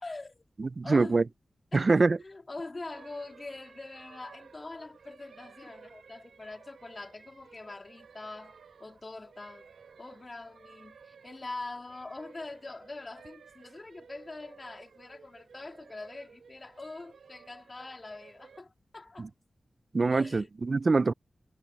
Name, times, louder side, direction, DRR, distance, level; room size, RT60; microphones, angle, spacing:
voice 1, 0.0-0.4 0.8-1.2 1.7-9.7 10.0-19.3 20.1-20.5, left 2 dB, 45° left, 2.8 m, -43 dB
voice 2, 0.6-1.2 1.7-2.2 19.9-21.1, right 3 dB, 55° right, 0.4 m, -24 dB
sound 1, 2.9-18.6, right 6 dB, 90° right, 1.1 m, -56 dB
cardioid pair, 45°, 0 cm